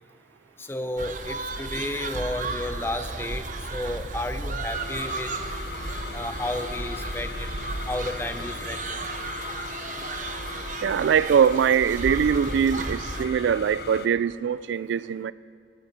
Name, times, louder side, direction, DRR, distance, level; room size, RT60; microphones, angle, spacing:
voice 1, 0.6-5.3 6.1-7.5 7.9-9.0, left 1 dB, 15° left, 0.6 m, -32 dB
sound 1, 1.0-13.3, right 3 dB, 45° right, 0.8 m, -34 dB
sound 2, 2.6-8.7, left 1 dB, 40° left, 1.3 m, -46 dB
sound 3, 4.7-14.1, left 6 dB, 60° left, 0.6 m, -39 dB
voice 2, 10.8-15.3, right 7 dB, 85° right, 0.3 m, -22 dB
14.0 x 12.0 x 6.7 m
head